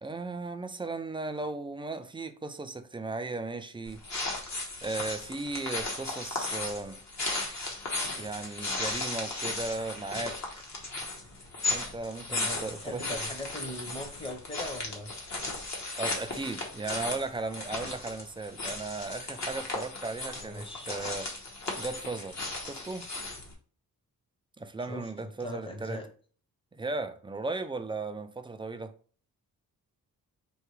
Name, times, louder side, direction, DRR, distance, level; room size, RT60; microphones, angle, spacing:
voice 1, 0.0-4.0 4.8-7.0 8.2-10.4 11.7-13.2 16.0-21.3 21.8-23.1 24.6-26.0 26.7-28.9, right 3 dB, 15° right, 0.3 m, -36 dB
sound 1, 3.9-23.5, left 2 dB, 50° left, 1.3 m, -36 dB
voice 2, 12.3-15.1 20.4-21.0 24.9-26.1, left 1 dB, 15° left, 0.9 m, -40 dB
4.5 x 2.8 x 3.1 m
wide cardioid pair, 130°, 35 cm